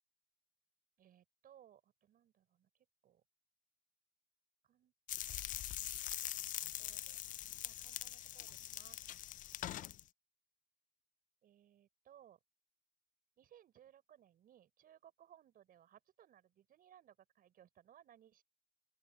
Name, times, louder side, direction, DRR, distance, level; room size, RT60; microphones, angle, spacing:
voice 1, 1.0-2.7 3.0-3.2 4.7-4.9 5.3-6.0 6.8-7.2 7.6-9.0 11.4-12.4 13.4-18.4, right 10 dB, 60° right, 6.9 m, -64 dB
sound 1, 5.1-10.0, left 13 dB, 50° left, 0.4 m, -43 dB
open air
cardioid pair, 110°, 17 cm